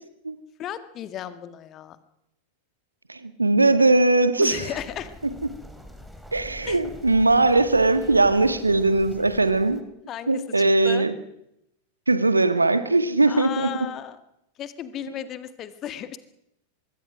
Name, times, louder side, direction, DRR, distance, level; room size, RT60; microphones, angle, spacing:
voice 1, 0.6-2.0 4.4-5.1 6.6-6.8 10.1-11.0 13.3-14.2 14.6-16.2, left 10 dB, 30° left, 11 dB, 1.7 m, -35 dB
voice 2, 3.1-4.7 6.3-9.8 10.3-11.1 12.1-13.7, right 2 dB, 80° right, 11 dB, 1.6 m, -20 dB
sound 1, 4.7-9.8, equal, ahead, 3.1 m, -44 dB
25.0 x 22.0 x 6.1 m, 0.82 s
figure-of-eight pair, 90°, 0 cm